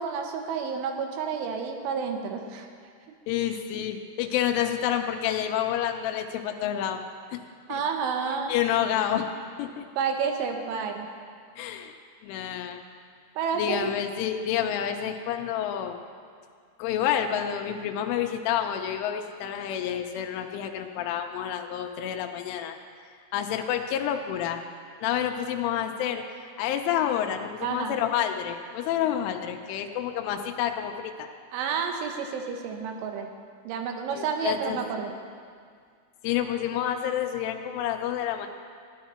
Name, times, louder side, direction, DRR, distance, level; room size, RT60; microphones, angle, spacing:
voice 1, 0.0-2.7 7.7-8.6 10.0-11.1 13.4-13.9 27.6-28.0 31.5-33.3 33.7-35.1, right 6 dB, 80° right, 4 dB, 3.4 m, -30 dB
voice 2, 3.3-7.0 7.3-7.4 7.7-7.8 8.5-9.3 9.6-9.9 11.6-12.0 12.2-12.8 13.5-16.0 16.8-22.8 23.3-24.6 25.0-26.2 26.6-31.3 34.1-35.1 36.2-38.5, left 10 dB, 90° left, 5 dB, 3.2 m, -29 dB
16.0 x 10.5 x 4.4 m, 2.1 s
omnidirectional pair, 5.5 m